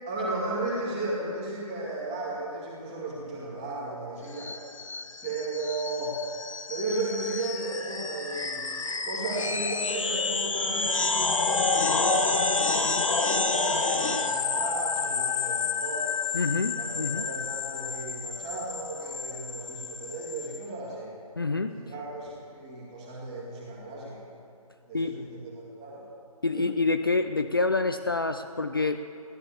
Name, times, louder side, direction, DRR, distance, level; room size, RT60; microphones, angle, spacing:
voice 1, 0.1-4.5 5.2-6.1 6.7-16.1 16.7-21.1 21.7-24.3 24.9-26.1 26.5-26.7, right 2 dB, 10° right, -5 dB, 2.1 m, -35 dB
sound 1, 4.4-20.6, left 4 dB, 55° left, 1.4 m, -29 dB
voice 2, 16.3-17.2 21.4-21.8 24.9-25.2 26.4-29.0, left 3 dB, 35° left, 7 dB, 0.5 m, -27 dB
16.0 x 12.0 x 7.1 m, 2.8 s
figure-of-eight pair, 175°, 19 cm